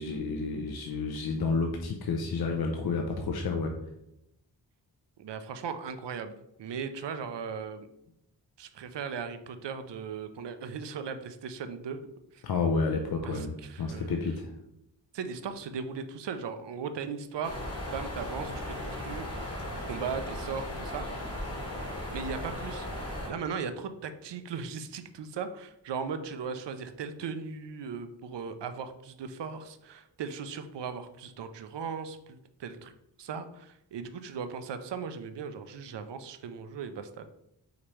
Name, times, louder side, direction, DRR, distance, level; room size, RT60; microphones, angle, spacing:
voice 1, 0.0-3.7 12.4-14.5, left 4 dB, 55° left, 3 dB, 0.6 m, -30 dB
voice 2, 5.2-7.9 8.6-12.0 12.3-12.4 13.2-14.2 15.1-17.6 17.9-21.1 22.1-32.9 33.2-37.3, right 6 dB, 70° right, 10 dB, 0.5 m, -38 dB
sound 1, 17.4-23.3, left 1 dB, 35° left, 1.4 m, -37 dB
5.1 x 2.8 x 3.1 m, 0.83 s
cardioid pair, 50°, 44 cm